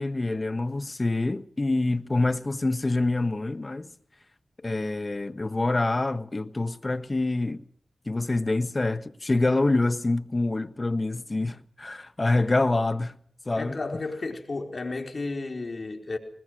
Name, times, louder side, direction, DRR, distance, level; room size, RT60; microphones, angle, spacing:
voice 1, 0.0-3.9 4.6-7.6 8.1-13.2 13.4-13.8, left 2 dB, 40° left, 1.4 m, -26 dB
voice 2, 13.6-16.2, left 3 dB, 55° left, 4.3 m, -33 dB
21.0 x 20.0 x 6.3 m
cardioid pair, 55°, 0 cm